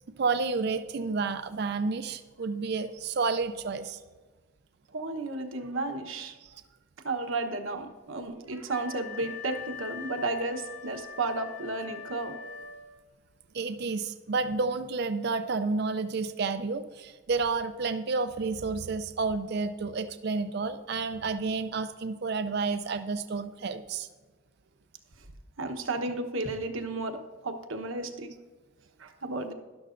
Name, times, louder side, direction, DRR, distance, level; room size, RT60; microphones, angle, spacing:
voice 1, 0.2-4.0 6.4-6.5 13.5-24.1, right 4 dB, 50° right, 10 dB, 0.4 m, -30 dB
voice 2, 4.9-6.4 7.0-12.4 25.6-28.3 29.0-29.5, right 2 dB, 65° right, 6 dB, 1.0 m, -33 dB
Wind instrument woodwind instrument, 8.7-13.1, left 6 dB, 35° left, 1.0 m, -43 dB
12.0 x 12.0 x 2.6 m, 1.3 s
head